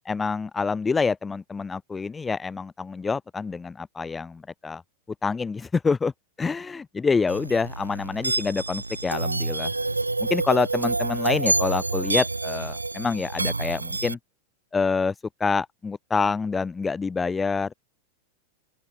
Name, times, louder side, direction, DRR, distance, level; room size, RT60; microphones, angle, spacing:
voice 1, 0.0-4.8 5.2-6.1 6.4-9.7 10.3-14.2 14.7-15.1 15.4-17.7, left 4 dB, 15° left, 1.9 m, -26 dB
sound 1, 7.3-14.1, right 3 dB, 90° right, 5.7 m, -27 dB
open air
figure-of-eight pair, 90°, 0 cm